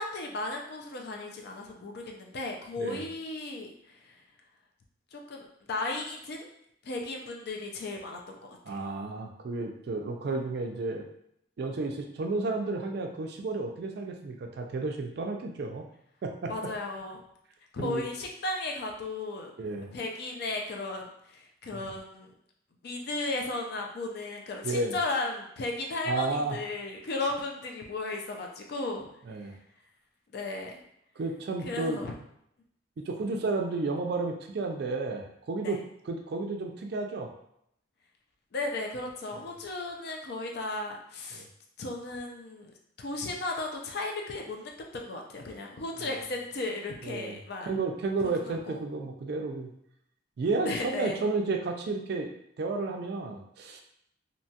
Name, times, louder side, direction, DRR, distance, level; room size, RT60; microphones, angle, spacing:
voice 1, 0.0-3.7 4.0-4.1 5.1-6.5 6.8-8.8 16.5-17.2 17.7-19.5 19.9-22.3 22.8-29.1 30.3-30.7 31.6-32.1 35.6-35.8 38.5-41.5 41.8-47.7 48.2-48.8 50.6-51.2, left 2 dB, 55° left, 1 dB, 0.4 m, -35 dB
voice 2, 8.6-11.1 11.6-15.9 16.2-16.5 17.8-18.0 19.6-19.9 21.7-21.8 24.6-25.0 26.0-26.6 29.3-29.6 31.2-32.0 33.1-35.8 36.1-37.3 41.3-41.4 46.0-46.1 47.0-47.4 47.6-49.7 50.4-52.3 52.6-53.8, right 3 dB, 55° right, 3 dB, 0.3 m, -32 dB
2.8 x 2.2 x 2.7 m, 0.74 s
head